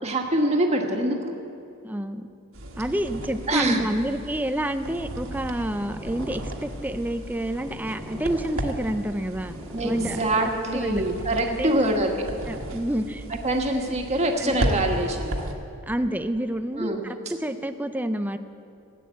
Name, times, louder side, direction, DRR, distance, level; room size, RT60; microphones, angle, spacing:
voice 1, 0.0-1.3 3.5-3.8 9.7-12.1 13.4-15.4 16.7-17.0, right 1 dB, 30° right, 2 dB, 1.6 m, -24 dB
voice 2, 1.8-2.3 2.8-9.5 9.8-10.2 10.7-11.0 11.5-12.1 12.5-13.3 14.1-14.6 15.9-18.4, right 1 dB, 10° right, 9 dB, 0.5 m, -29 dB
sound 1, 2.5-15.5, right 1 dB, 65° right, 1.6 m, -35 dB
Purr, 5.6-11.0, left 1 dB, 10° left, 1.6 m, -42 dB
15.5 x 9.2 x 8.3 m, 2.7 s
head